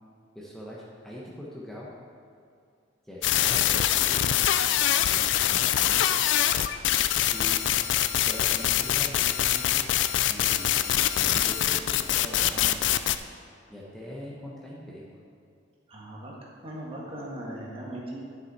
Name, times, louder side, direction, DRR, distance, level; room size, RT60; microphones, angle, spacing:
voice 1, 0.3-1.9 3.1-4.4 4.8-6.1 7.2-7.7 8.2-10.8 11.3-13.0 13.7-15.0, equal, ahead, -6 dB, 1.1 m, -42 dB
sound 1, 3.2-13.2, left 11 dB, 75° left, 0.4 m, -24 dB
voice 2, 15.9-16.3 16.6-18.2, right 1 dB, 30° right, -4 dB, 1.7 m, -38 dB
10.5 x 6.7 x 4.3 m, 2.4 s
head